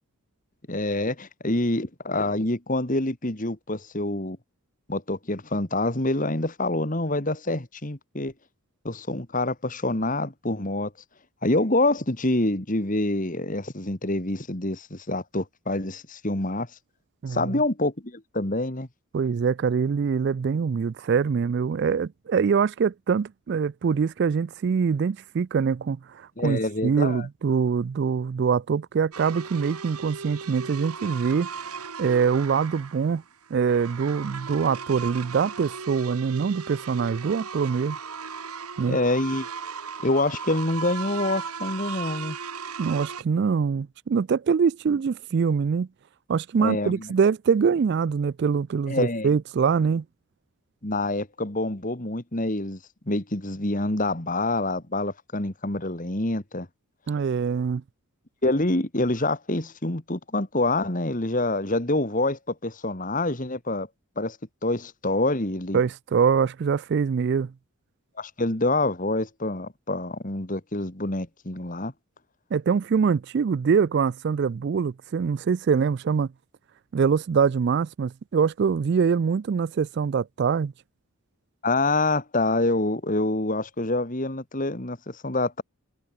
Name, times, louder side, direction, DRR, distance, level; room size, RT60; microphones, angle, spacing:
voice 1, 0.7-4.4 4.9-8.3 8.8-10.9 11.4-16.7 17.3-18.9 26.4-27.3 38.9-39.5 40.0-42.4 46.6-47.1 48.9-49.3 50.8-52.8 53.1-56.7 58.4-63.9 64.2-64.4 64.6-65.8 68.2-71.9 81.6-85.6, left 2 dB, 35° left, 2.0 m, -26 dB
voice 2, 17.2-17.6 19.1-31.5 32.0-33.2 33.5-38.0 38.8-39.0 42.8-45.9 46.3-50.0 57.1-57.8 65.7-67.5 72.5-76.3 76.9-80.7, right 6 dB, 50° right, 0.3 m, -24 dB
sound 1, 29.1-43.2, right 5 dB, 85° right, 2.0 m, -37 dB
head